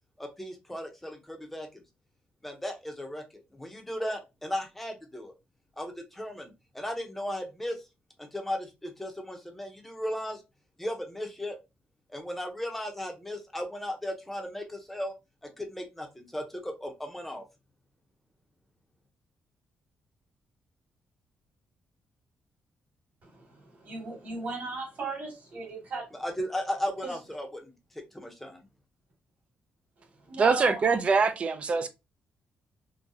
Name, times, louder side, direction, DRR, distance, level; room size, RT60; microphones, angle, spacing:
voice 1, 0.2-1.8 2.4-3.2 3.5-5.3 5.8-7.8 8.2-10.4 10.8-11.6 12.1-15.1 15.6-17.4 26.2-27.7 28.1-28.6, equal, 5° left, 0.7 m, -36 dB
voice 2, 23.2-26.2 27.0-27.2 30.0-31.2, right 3 dB, 55° right, 2.1 m, -38 dB
voice 3, 30.4-31.9, right 4 dB, 35° right, 0.4 m, -24 dB
3.8 x 2.2 x 2.6 m
cardioid pair, 145°, 3 cm